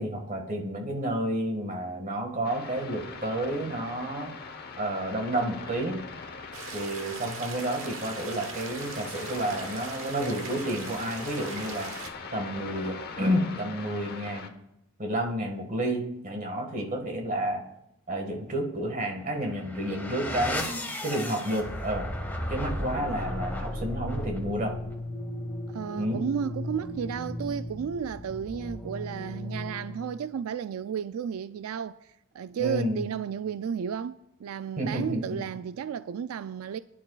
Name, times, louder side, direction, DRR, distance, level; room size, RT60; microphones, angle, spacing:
voice 1, 0.0-4.3 4.8-6.0 6.7-11.9 12.3-14.5 15.0-17.6 18.1-20.7 21.0-22.1 22.5-24.8 25.9-26.2 32.6-33.0 34.8-35.4, right 1 dB, 40° right, 1.9 m, -30 dB
sound 1, 2.4-14.5, left 4 dB, 45° left, 1.1 m, -41 dB
sound 2, 6.5-12.1, right 5 dB, 65° right, 1.3 m, -41 dB
sound 3, 19.4-30.1, left 1 dB, 10° left, 1.7 m, -35 dB
voice 2, 25.7-36.8, right 7 dB, 85° right, 0.3 m, -33 dB
20.0 x 11.0 x 2.4 m
head